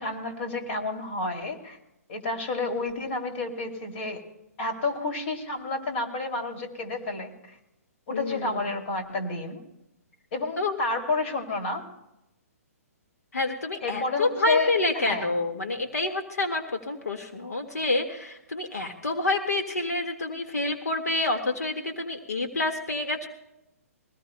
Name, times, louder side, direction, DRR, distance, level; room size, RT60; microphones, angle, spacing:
voice 1, 0.0-1.8 2.1-4.3 4.6-7.6 8.1-9.6 10.3-11.9 13.8-15.3, left 3 dB, 45° left, 4 dB, 2.6 m, -30 dB
voice 2, 8.1-8.6 10.6-10.8 13.3-23.3, left 2 dB, 80° left, 4 dB, 1.7 m, -28 dB
22.5 x 18.5 x 2.2 m, 0.92 s
figure-of-eight pair, 130°, 8 cm